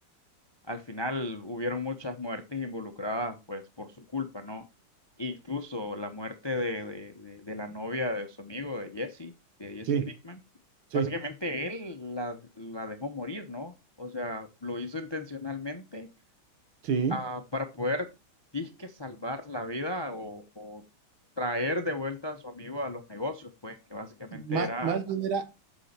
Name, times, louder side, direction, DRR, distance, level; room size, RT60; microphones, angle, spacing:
voice 1, 0.7-4.6 5.2-9.3 9.6-9.9 10.2-10.4 10.9-16.1 17.1-18.1 18.5-20.8 21.4-25.0, left 1 dB, 40° left, 0.3 m, -35 dB
voice 2, 16.8-17.2 24.3-25.4, right 6 dB, 85° right, 2.1 m, -28 dB
8.4 x 6.3 x 4.4 m
omnidirectional pair, 2.2 m